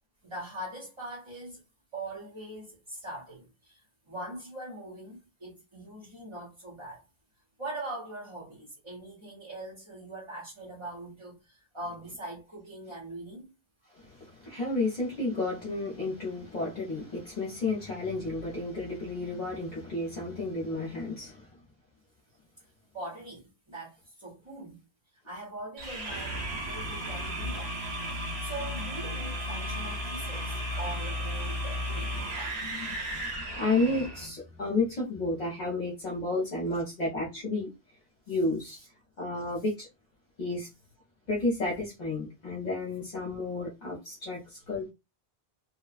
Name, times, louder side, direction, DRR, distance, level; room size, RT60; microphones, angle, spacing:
voice 1, 0.2-1.6 1.9-7.0 7.6-13.5 22.9-24.8 25.2-27.7 28.1-32.7 38.7-38.8, right 1 dB, 30° right, 0.9 m, -42 dB
voice 2, 13.9-21.6 32.6-37.7 38.3-38.8 39.2-39.9 40.4-40.7 41.3-44.9, left 2 dB, 45° left, 0.9 m, -32 dB
sound 1, 25.8-34.3, equal, 85° right, 1.5 m, -34 dB
2.8 x 2.2 x 2.4 m
omnidirectional pair, 1.0 m